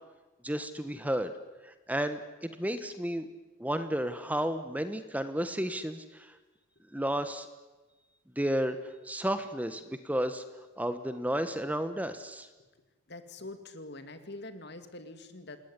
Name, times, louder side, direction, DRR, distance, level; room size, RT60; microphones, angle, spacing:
voice 1, 0.4-1.3 1.6-3.2 3.6-6.3 6.9-7.5 8.4-8.8 9.0-10.4 10.8-12.5, equal, 5° right, 10 dB, 1.2 m, -32 dB
voice 2, 13.1-15.6, left 2 dB, 50° left, 9 dB, 2.6 m, -44 dB
28.0 x 20.0 x 9.8 m, 1.2 s
head